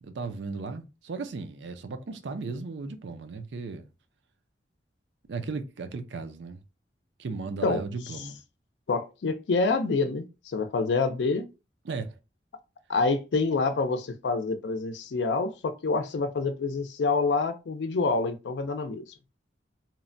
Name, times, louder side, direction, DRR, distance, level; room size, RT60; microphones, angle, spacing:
voice 1, 0.0-3.9 5.3-6.6 7.2-8.4 11.8-12.1, right 4 dB, 80° right, 0.5 m, -36 dB
voice 2, 8.9-11.5 12.9-19.1, left 3 dB, 80° left, 0.4 m, -27 dB
2.9 x 2.1 x 2.5 m
head